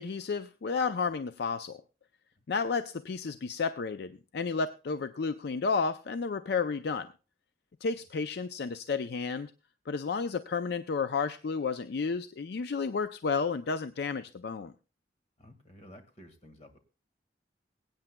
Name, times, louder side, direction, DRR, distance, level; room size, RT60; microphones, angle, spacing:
voice 1, 0.0-1.8 2.5-7.1 7.8-9.5 9.9-14.7, left 5 dB, 65° left, 11 dB, 0.4 m, -32 dB
voice 2, 15.4-16.8, left 1 dB, 40° left, 7 dB, 1.7 m, -53 dB
23.0 x 8.8 x 2.2 m, 0.32 s
head